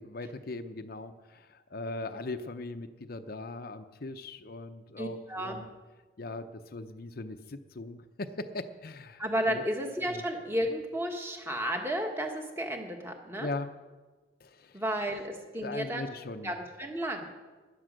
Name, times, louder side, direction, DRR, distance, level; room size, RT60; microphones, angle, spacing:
voice 1, 0.0-5.7 6.2-9.6 10.1-10.2 13.4-13.7 14.4-14.8 15.6-16.5, left 2 dB, 55° left, 8 dB, 0.7 m, -40 dB
voice 2, 5.0-5.7 9.2-13.5 14.7-16.1 16.4-17.3, equal, 15° right, 3 dB, 1.5 m, -33 dB
13.5 x 10.0 x 6.5 m, 1.3 s
head